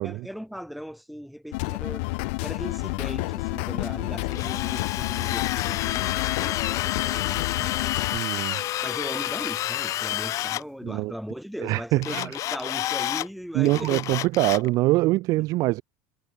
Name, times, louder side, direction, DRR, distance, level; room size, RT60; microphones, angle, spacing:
voice 1, 0.0-2.1 2.4-8.0 8.8-14.0 15.4-15.5, equal, ahead, 7.0 m, -38 dB
sound 1, 1.5-8.2, left 29 dB, 70° left, 0.9 m, -30 dB
Drill, 4.3-10.6 12.0-13.3 13.6-14.7, left 14 dB, 50° left, 2.2 m, -29 dB
voice 2, 8.1-8.6 10.8-11.1 11.6-12.3 13.5-15.8, right 19 dB, 55° right, 1.9 m, -24 dB
hypercardioid pair, 90°, 7 cm